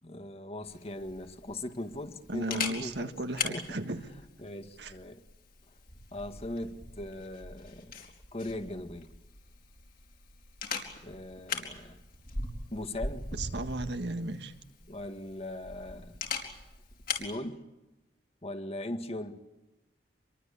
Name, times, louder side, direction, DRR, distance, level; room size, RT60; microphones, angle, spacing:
voice 1, 0.0-3.2 3.5-3.7 4.4-5.2 6.1-8.0 8.3-9.1 11.0-12.0 12.7-13.3 14.9-16.2 17.1-17.6 18.4-19.4, left 1 dB, 35° left, 1.8 m, -39 dB
Camera, 0.6-17.3, left 4 dB, 55° left, 4.4 m, -41 dB
voice 2, 2.3-4.0 4.8-4.9 13.3-14.5, right 2 dB, 70° right, 1.6 m, -35 dB
26.5 x 23.0 x 8.5 m
head